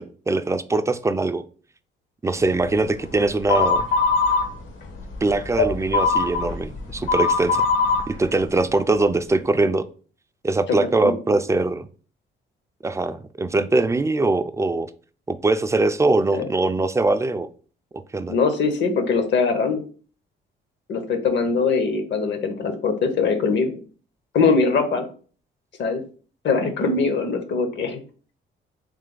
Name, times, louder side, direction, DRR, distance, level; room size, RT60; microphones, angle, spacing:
voice 1, 0.0-1.4 2.2-3.8 5.2-7.7 8.1-9.8 10.4-11.9 12.8-14.9 15.3-17.5 18.1-18.3, right 2 dB, 15° right, 11 dB, 0.3 m, -22 dB
sound 1, 3.5-4.4 5.0-8.0, left 4 dB, 80° left, 1.4 m, -20 dB
voice 2, 18.3-19.8 20.9-23.8 24.3-25.1 25.8-26.0 26.4-28.0, left 4 dB, 65° left, 8 dB, 0.9 m, -22 dB
3.4 x 3.3 x 3.8 m, 0.41 s
cardioid pair, 90°, 20 cm